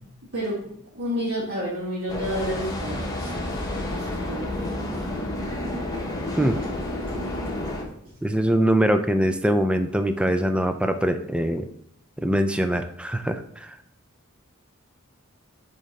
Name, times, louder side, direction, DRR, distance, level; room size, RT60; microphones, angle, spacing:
voice 1, 0.9-3.3 3.7-4.7, equal, 55° right, -8 dB, 1.6 m, -30 dB
sound 1, 2.1-7.8, left 1 dB, 15° left, 0.9 m, -30 dB
voice 2, 8.2-11.7 12.2-13.7, equal, 5° right, 8 dB, 0.3 m, -23 dB
6.9 x 2.8 x 5.1 m, 0.71 s
head